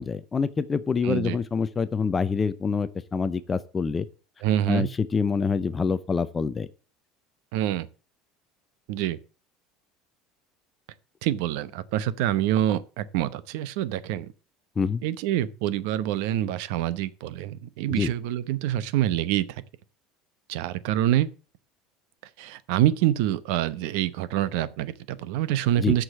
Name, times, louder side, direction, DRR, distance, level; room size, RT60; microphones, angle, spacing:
voice 1, 0.0-4.1 4.7-6.7 14.8-15.0 17.9-18.1 25.8-26.0, left 5 dB, 15° left, 0.5 m, -26 dB
voice 2, 1.0-1.4 4.4-4.9 7.5-7.9 8.9-9.2 11.2-14.3 15.0-19.6 20.5-21.3 22.4-26.0, right 12 dB, 75° right, 0.8 m, -26 dB
8.1 x 6.3 x 7.3 m
cardioid pair, 160°, 0 cm